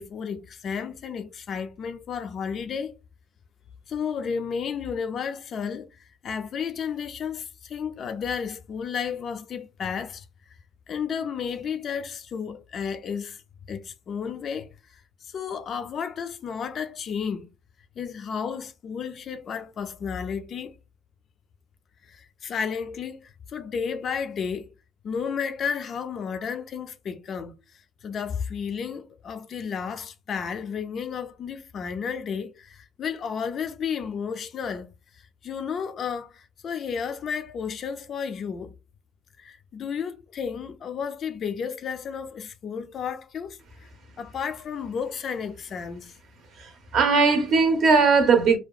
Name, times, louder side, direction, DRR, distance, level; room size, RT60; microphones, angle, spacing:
voice 1, 0.0-3.0 3.9-10.2 10.9-13.4 13.7-17.5 18.0-20.7 22.0-24.7 25.0-27.6 28.0-34.9 35.2-38.7 39.4-43.9 44.2-46.1, left 6 dB, 40° left, 0.3 m, -32 dB
voice 2, 46.6-48.6, right 4 dB, 50° right, 0.6 m, -19 dB
2.6 x 2.2 x 2.3 m
cardioid pair, 155°, 0 cm